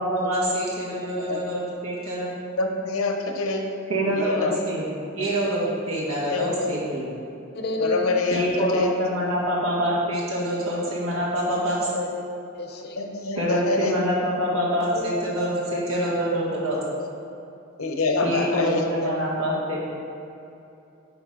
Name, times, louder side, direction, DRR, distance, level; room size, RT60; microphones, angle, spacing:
voice 1, 0.0-2.3 3.9-4.9 5.2-7.1 8.3-11.9 13.4-16.8 18.2-19.8, equal, 80° right, -5 dB, 1.7 m, -26 dB
voice 2, 2.6-3.7 4.2-4.5 6.3-6.7 7.8-8.9 13.0-13.9 17.8-19.1, left 3 dB, 85° left, 3 dB, 0.8 m, -25 dB
voice 3, 7.5-8.2 8.5-8.7 10.0-10.1 11.8-13.0 14.9-16.0 16.9-17.1, left 2 dB, 50° left, 3 dB, 0.6 m, -32 dB
8.5 x 5.1 x 3.8 m, 2.7 s
head